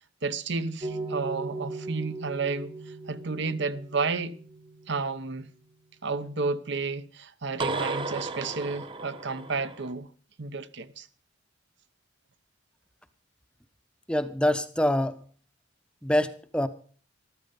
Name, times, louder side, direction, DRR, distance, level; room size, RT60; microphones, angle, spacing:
voice 1, 0.2-4.4 4.9-5.5 6.0-10.1 10.4-11.1, right 4 dB, 60° right, 0.9 m, -31 dB
sound 1, 0.8-5.1 7.6-9.9, right 3 dB, 25° right, 1.0 m, -36 dB
voice 2, 14.1-15.2 16.0-16.7, left 1 dB, 5° left, 0.7 m, -25 dB
14.5 x 12.5 x 5.3 m
head